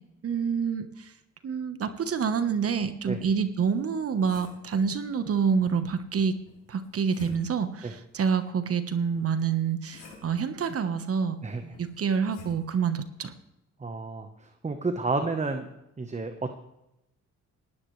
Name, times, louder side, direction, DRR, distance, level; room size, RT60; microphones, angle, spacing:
voice 1, 0.2-1.1 1.4-6.3 6.7-11.4 11.6-13.3, right 6 dB, 50° right, 10 dB, 1.3 m, -27 dB
sound 1, 3.7-4.7 6.5-7.7 9.1-10.4 11.7-12.6, left 4 dB, 90° left, 5.4 m, -49 dB
voice 2, 13.8-14.3 14.6-15.6 16.0-16.5, right 3 dB, 25° right, 6 dB, 1.2 m, -30 dB
18.5 x 15.0 x 3.3 m, 0.88 s
cardioid pair, 90°, 30 cm